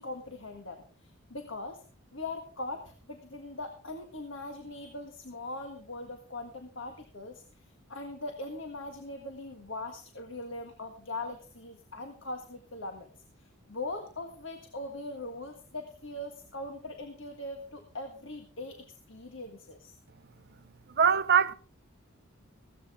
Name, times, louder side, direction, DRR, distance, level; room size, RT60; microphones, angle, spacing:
voice 1, 0.0-1.8 2.1-13.1 13.4-19.9, left 2 dB, 65° left, 1.7 m, -41 dB
voice 2, 20.9-21.5, right 7 dB, 50° right, 0.8 m, -23 dB
16.0 x 13.5 x 3.6 m
head